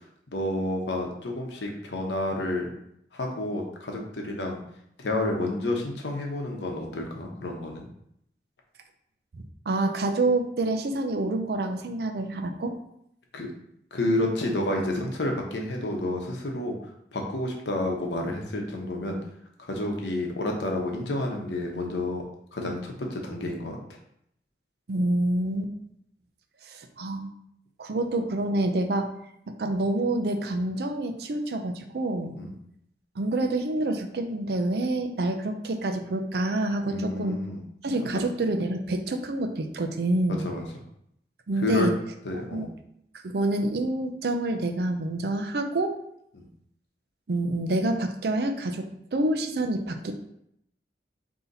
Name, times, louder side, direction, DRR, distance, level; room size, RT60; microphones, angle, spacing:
voice 1, 0.3-2.7 3.1-4.6 5.0-7.9 13.3-13.5 13.9-16.8 17.1-19.2 19.7-22.2 22.5-23.8 32.4-32.5 36.8-37.6 38.0-38.2 40.4-40.6 41.6-41.9 42.2-42.7 46.4-46.5, left 1 dB, 80° left, 1 dB, 0.9 m, -30 dB
voice 2, 9.3-12.8 24.9-25.7 26.6-27.3 27.8-29.1 29.6-32.3 33.2-37.4 37.8-40.4 41.5-41.9 42.5-42.7 43.1-45.9 47.3-48.9 49.1-50.1, right 2 dB, 60° right, 6 dB, 0.5 m, -27 dB
3.9 x 2.8 x 4.0 m, 0.73 s
head